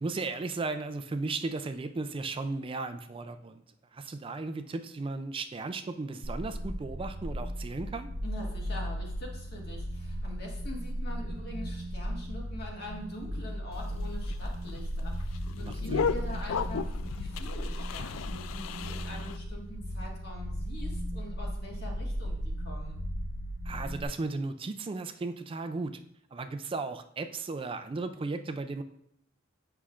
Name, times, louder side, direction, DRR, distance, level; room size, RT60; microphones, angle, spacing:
voice 1, 0.0-3.6 3.9-8.1 15.6-16.1 23.7-26.0 26.3-28.8, right 3 dB, 25° right, 9 dB, 0.4 m, -35 dB
sound 1, 6.2-24.0, equal, 75° right, 0.6 m, -36 dB
voice 2, 8.2-23.0, left 1 dB, 55° left, -2 dB, 1.7 m, -44 dB
sound 2, 13.7-19.4, left 6 dB, 80° left, 0.3 m, -35 dB
8.1 x 5.6 x 2.5 m, 0.71 s
head